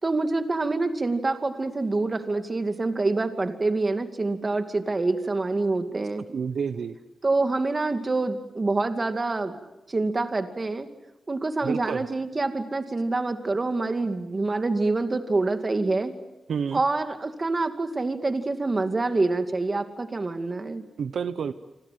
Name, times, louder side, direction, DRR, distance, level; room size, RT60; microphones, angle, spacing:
voice 1, 0.0-6.2 7.2-9.6 9.9-10.9 11.3-16.1 16.7-20.8, right 3 dB, 30° right, 8 dB, 2.4 m, -26 dB
voice 2, 6.3-7.0 11.6-12.1 16.5-16.8 21.0-21.5, right 6 dB, 75° right, 12 dB, 0.9 m, -29 dB
28.0 x 26.0 x 7.7 m, 0.96 s
wide cardioid pair, 110°, 0 cm